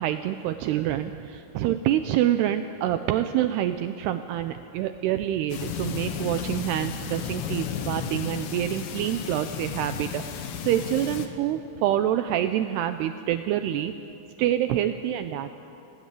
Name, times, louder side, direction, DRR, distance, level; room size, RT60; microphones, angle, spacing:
voice 1, 0.0-13.9 14.4-15.5, right 12 dB, 80° right, 9 dB, 2.4 m, -26 dB
sound 1, 5.5-11.3, left 8 dB, 85° left, 3.8 m, -33 dB
29.0 x 18.0 x 8.4 m, 2.8 s
omnidirectional pair, 5.3 m